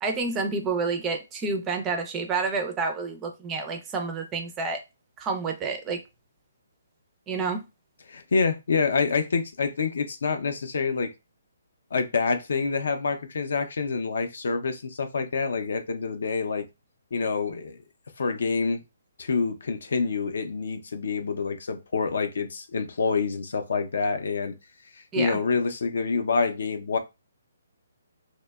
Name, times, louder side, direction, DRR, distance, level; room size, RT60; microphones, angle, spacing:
voice 1, 0.0-4.8 5.2-6.0 7.3-7.6 25.1-25.4, right 4 dB, 15° right, 0.3 m, -29 dB
voice 2, 8.1-11.1 11.9-16.7 17.1-17.8 18.2-18.8 19.2-24.5 24.9-27.0, left 4 dB, 70° left, 0.4 m, -27 dB
2.7 x 2.1 x 2.2 m
hypercardioid pair, 165°, 0 cm